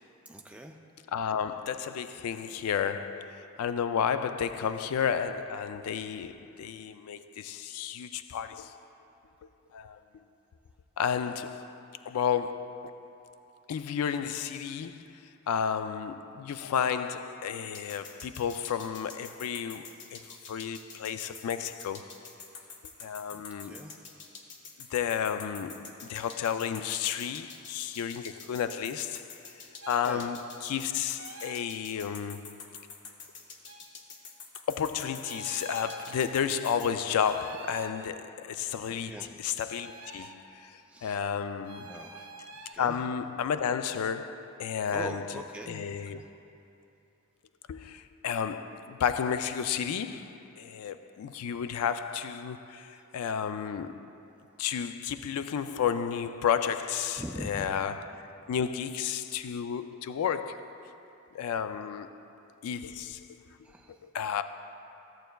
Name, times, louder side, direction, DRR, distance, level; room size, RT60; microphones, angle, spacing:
voice 1, 0.3-0.8 4.5-4.7 23.3-23.9 30.0-30.3 39.0-39.4 40.9-41.2 41.8-42.3 42.7-43.0 44.9-46.3 52.9-53.0 57.2-57.8 63.6-64.0, right 1 dB, 5° right, 0.3 m, -43 dB
voice 2, 1.1-8.7 9.7-10.0 11.0-11.8 12.1-13.1 13.7-15.1 15.5-20.2 20.5-22.2 23.0-23.8 24.9-29.2 29.9-32.6 34.7-40.7 41.0-42.0 42.8-46.2 47.7-54.0 54.6-58.2 58.5-60.7 61.3-62.1 62.6-63.2 64.0-64.4, left 7 dB, 85° left, 0.3 m, -32 dB
Ringshift Hi-Hat Loop, 17.7-36.9, left 5 dB, 50° left, 0.7 m, -47 dB
sound 1, 29.8-30.1 31.1-31.6 33.6-33.8 35.2-36.1 37.2-38.0 39.7-40.4 41.6-42.7, right 3 dB, 65° right, 0.6 m, -45 dB
13.5 x 7.7 x 2.3 m
head